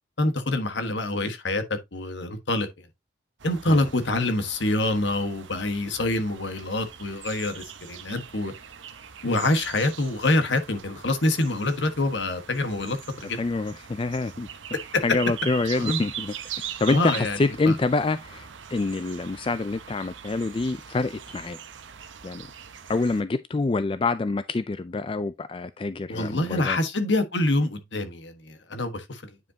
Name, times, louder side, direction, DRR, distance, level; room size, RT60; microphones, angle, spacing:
voice 1, 0.2-1.6 1.9-2.7 3.4-8.5 9.2-13.4 14.9-15.0 15.8-16.0 16.9-17.4 17.7-17.8 26.1-29.2, left 2 dB, 75° left, 1.3 m, -26 dB
sound 1, 3.4-23.2, right 9 dB, 80° right, 0.9 m, -41 dB
voice 2, 13.4-14.5 15.0-21.6 22.2-22.5 22.9-26.8, left 3 dB, 30° left, 0.3 m, -26 dB
9.5 x 5.2 x 2.8 m
head